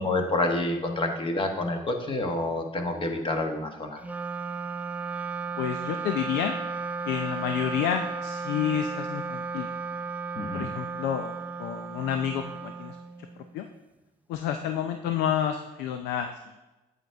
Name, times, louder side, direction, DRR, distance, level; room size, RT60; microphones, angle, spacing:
voice 1, 0.0-4.0 10.3-10.7, left 2 dB, 30° left, 4 dB, 1.3 m, -28 dB
Wind instrument woodwind instrument, 4.0-13.6, right 4 dB, 10° right, 0.5 m, -34 dB
voice 2, 5.6-6.6 7.0-9.7 10.5-11.3 11.6-13.0 13.5-13.7 14.3-16.3, left 9 dB, 90° left, 7 dB, 0.6 m, -29 dB
9.1 x 8.1 x 3.4 m, 1.1 s
cardioid pair, 110°, 17 cm